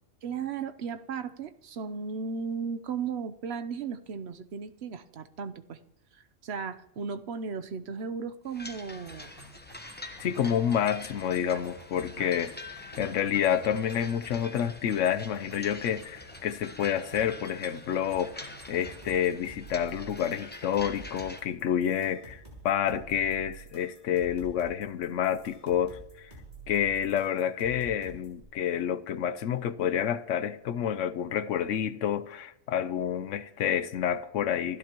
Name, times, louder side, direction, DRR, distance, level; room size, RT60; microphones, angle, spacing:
voice 1, 0.2-5.8 6.1-9.3 11.5-11.6 12.2-12.3, right 5 dB, 60° right, 1.1 m, -36 dB
sound 1, 8.5-21.4, left 2 dB, 10° left, 0.9 m, -46 dB
sound 2, 9.0-19.4, left 1 dB, 25° left, 6.4 m, -52 dB
voice 2, 10.2-12.5 13.0-26.3 26.7-34.8, left 9 dB, 80° left, 1.1 m, -29 dB
sound 3, 18.7-28.4, right 3 dB, 35° right, 6.4 m, -49 dB
27.5 x 13.0 x 3.0 m
omnidirectional pair, 1.3 m